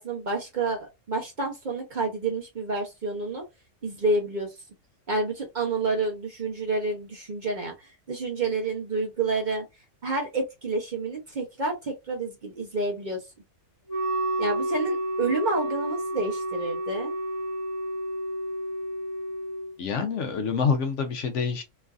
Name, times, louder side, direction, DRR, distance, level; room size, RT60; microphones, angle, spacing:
voice 1, 0.0-3.5 3.8-4.5 5.1-9.6 10.0-13.3 14.4-17.1, right 3 dB, 45° right, 0.8 m, -29 dB
Wind instrument woodwind instrument, 13.9-19.7, equal, 30° left, 1.1 m, -30 dB
voice 2, 19.8-21.6, left 5 dB, 70° left, 1.0 m, -26 dB
3.1 x 2.5 x 2.3 m
omnidirectional pair, 1.3 m